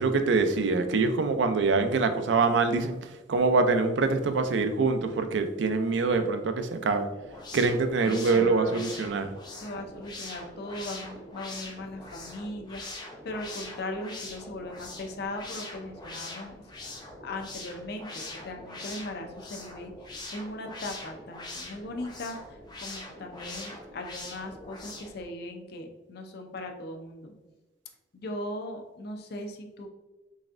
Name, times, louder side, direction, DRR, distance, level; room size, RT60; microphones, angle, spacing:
voice 1, 0.0-7.1 7.5-9.3, right 4 dB, 75° right, 8 dB, 0.4 m, -25 dB
sound 1, 7.2-25.2, left 2 dB, 25° left, 0.7 m, -43 dB
voice 2, 8.0-9.0 9.6-16.5 16.8-19.9 20.3-27.3 28.1-29.9, left 1 dB, 60° left, 4 dB, 0.5 m, -39 dB
4.0 x 3.4 x 2.5 m, 1.1 s
head